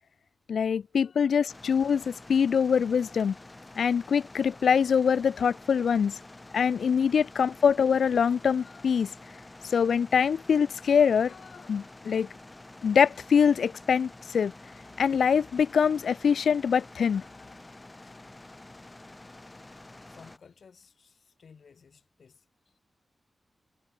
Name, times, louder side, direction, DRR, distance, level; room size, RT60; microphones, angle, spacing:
voice 1, 0.5-3.4 3.8-6.2 6.5-9.1 9.6-12.3 12.8-14.5 15.0-17.2, left 7 dB, 80° left, 0.3 m, -24 dB
sound 1, 1.5-20.4, left 2 dB, 20° left, 2.5 m, -49 dB
voice 2, 20.1-22.8, left 6 dB, 60° left, 2.3 m, -56 dB
wide cardioid pair, 140°, 0 cm